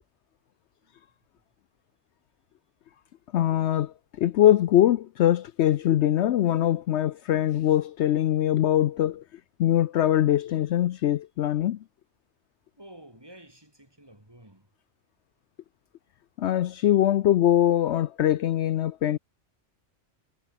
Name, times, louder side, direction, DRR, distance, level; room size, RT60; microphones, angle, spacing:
voice 1, 3.3-9.2 9.6-11.8 16.4-19.2, left 12 dB, 70° left, 0.8 m, -22 dB
voice 2, 12.8-14.7, right 1 dB, 20° right, 3.2 m, -50 dB
omnidirectional pair, 1.3 m